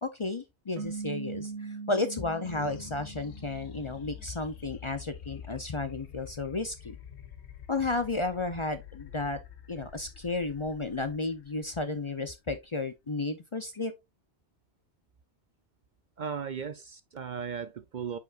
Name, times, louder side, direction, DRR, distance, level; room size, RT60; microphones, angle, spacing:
voice 1, 0.0-7.0 7.7-9.4 9.7-13.9, left 3 dB, 35° left, 0.6 m, -33 dB
sound 1, 0.8-4.1, right 5 dB, 85° right, 1.3 m, -41 dB
sound 2, 2.4-13.1, left 7 dB, 85° left, 1.1 m, -47 dB
voice 2, 16.2-18.2, right 6 dB, 55° right, 0.6 m, -36 dB
8.2 x 5.0 x 2.4 m
omnidirectional pair, 1.1 m